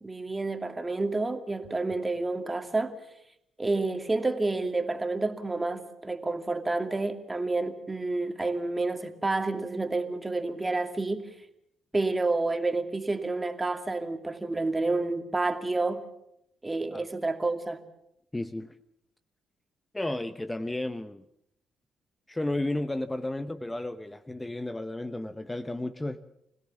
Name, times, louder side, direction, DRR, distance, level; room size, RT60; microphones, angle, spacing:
voice 1, 0.0-2.9 3.6-11.3 11.9-16.1 16.6-17.8, right 3 dB, 20° right, 2.5 m, -29 dB
voice 2, 18.3-18.7 19.9-21.2 22.3-26.2, left 1 dB, 15° left, 1.0 m, -33 dB
25.5 x 17.0 x 7.2 m
hypercardioid pair, 50°, 0 cm